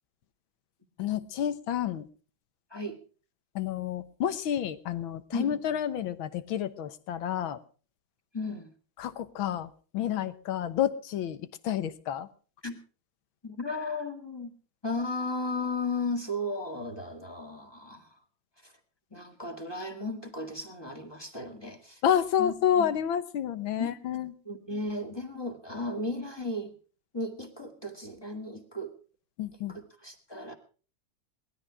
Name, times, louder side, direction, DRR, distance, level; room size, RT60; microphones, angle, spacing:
voice 1, 1.0-2.1 3.6-7.6 9.0-12.3 22.0-24.3 29.4-29.8, left 9 dB, 80° left, 13 dB, 1.9 m, -29 dB
voice 2, 8.3-8.7 12.6-12.8 13.4-14.5 14.8-18.1 18.6-18.7 19.1-22.0 22.4-22.9 23.8-23.9 24.5-26.7 27.1-28.9 29.7-30.6, left 2 dB, 10° left, 5 dB, 2.0 m, -35 dB
19.5 x 13.0 x 4.9 m, 0.40 s
omnidirectional pair, 2.2 m